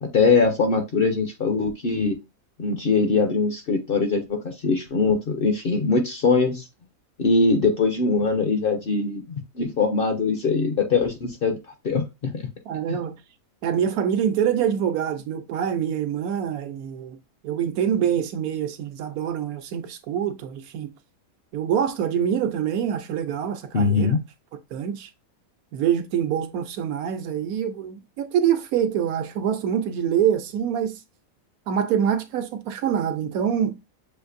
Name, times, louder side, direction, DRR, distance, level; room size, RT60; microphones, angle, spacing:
voice 1, 0.0-2.2 2.6-6.6 7.2-11.6 11.8-12.5 12.9-13.0 23.7-24.2, left 4 dB, 55° left, 0.6 m, -22 dB
voice 2, 12.7-13.2 13.6-17.2 17.4-20.9 21.5-24.1 24.7-25.1 25.7-31.0 31.7-33.8, right 9 dB, 85° right, 1.1 m, -25 dB
6.5 x 2.6 x 2.5 m
omnidirectional pair, 1.5 m